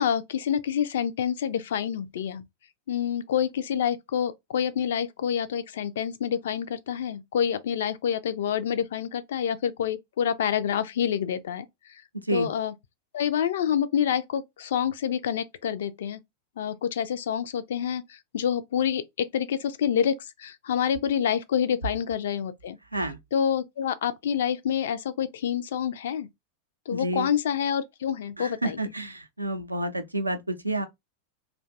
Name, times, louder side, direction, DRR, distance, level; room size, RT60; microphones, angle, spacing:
voice 1, 0.0-2.4 2.9-11.7 12.3-12.7 13.1-16.2 16.6-18.0 18.3-22.8 23.3-26.3 26.9-28.8, left 8 dB, 60° left, 0.3 m, -27 dB
voice 2, 26.9-27.3 28.4-30.9, right 1 dB, 85° right, 0.4 m, -29 dB
2.5 x 2.2 x 2.5 m
figure-of-eight pair, 90°, 0 cm